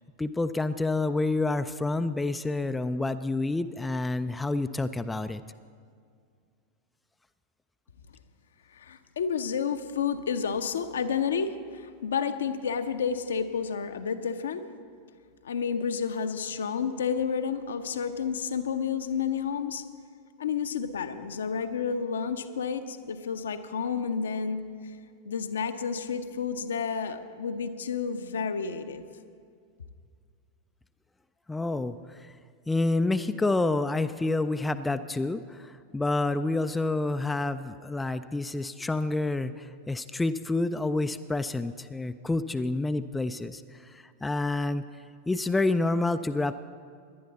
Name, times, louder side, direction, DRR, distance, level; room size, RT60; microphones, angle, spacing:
voice 1, 0.2-5.4 31.5-32.3 32.7-44.8 45.3-46.5, left 2 dB, 10° left, 10 dB, 0.4 m, -28 dB
voice 2, 8.7-14.6 15.4-19.8 20.4-24.9 25.2-29.0, left 6 dB, 65° left, 8 dB, 0.7 m, -30 dB
18.5 x 11.0 x 4.0 m, 2.2 s
figure-of-eight pair, 90°, 0 cm